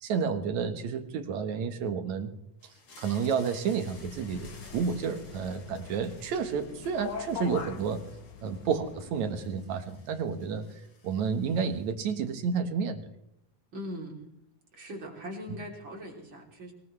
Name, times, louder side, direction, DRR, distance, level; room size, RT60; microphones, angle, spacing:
voice 1, 0.0-2.3 3.0-8.0 8.4-13.0, right 6 dB, 75° right, 7 dB, 2.6 m, -31 dB
sound 1, 2.6-12.1, left 3 dB, 45° left, 3.3 m, -56 dB
sound 2, 3.9-9.4, left 6 dB, 85° left, 2.9 m, -42 dB
voice 2, 13.7-14.2 14.7-16.7, equal, 40° right, 0 dB, 4.0 m, -40 dB
22.0 x 20.0 x 3.3 m, 0.81 s
omnidirectional pair, 3.3 m